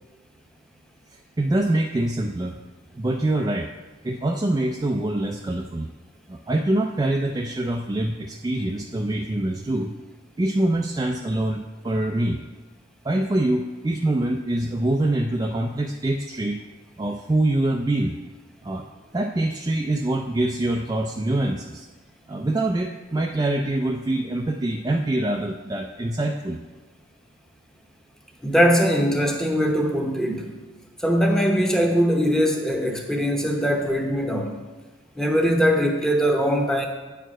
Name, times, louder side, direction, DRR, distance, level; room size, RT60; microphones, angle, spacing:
voice 1, 1.1-2.6 2.9-3.7 4.0-5.9 6.3-10.0 10.4-12.4 13.0-16.6 17.0-18.2 18.6-18.9 19.1-21.9 22.3-26.6, right 1 dB, 20° right, 2 dB, 0.3 m, -24 dB
voice 2, 28.4-30.5 31.0-34.6 35.2-36.9, equal, 5° left, 2 dB, 0.8 m, -21 dB
9.0 x 4.6 x 6.2 m, 1.2 s
head